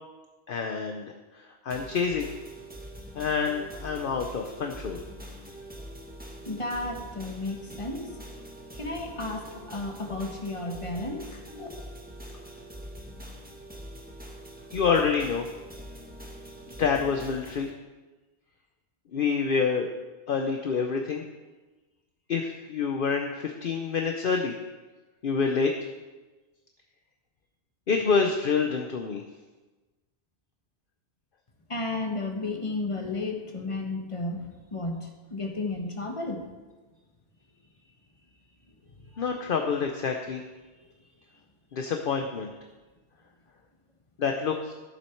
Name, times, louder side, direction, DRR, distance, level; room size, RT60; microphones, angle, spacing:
voice 1, 0.5-1.1 1.6-2.3 3.1-5.0 14.7-15.5 16.8-17.7 19.1-19.9 20.3-21.2 22.3-24.5 25.2-25.7 27.9-29.2 39.2-40.4 41.7-42.5 44.2-44.7, left 5 dB, 55° left, 3 dB, 0.9 m, -27 dB
sound 1, 1.7-17.7, right 1 dB, 10° right, 1.4 m, -44 dB
voice 2, 6.4-8.1 8.7-11.7 31.7-35.0 35.3-36.4 39.1-39.2, left 2 dB, 30° left, 2 dB, 1.4 m, -33 dB
14.5 x 7.3 x 4.6 m, 1.2 s
omnidirectional pair, 1.1 m